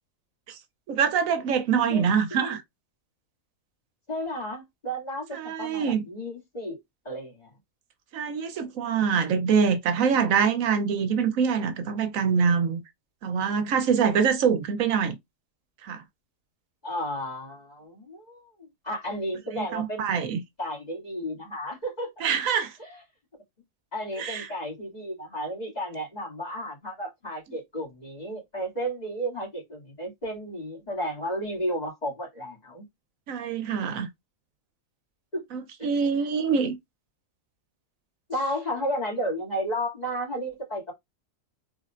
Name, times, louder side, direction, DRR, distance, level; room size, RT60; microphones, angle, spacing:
voice 1, 0.9-2.6 5.3-6.1 8.1-12.8 13.2-15.2 15.8-16.0 19.5-20.4 22.2-22.7 24.2-24.5 33.3-34.1 35.5-36.8, right 6 dB, 80° right, 1.1 m, -24 dB
voice 2, 1.9-2.6 4.1-6.8 7.0-7.5 16.8-20.1 20.6-22.3 22.8-23.0 23.9-32.8 35.3-35.4 35.8-35.9 38.3-40.9, equal, 30° left, 2.6 m, -33 dB
4.2 x 3.5 x 2.4 m
omnidirectional pair, 1.4 m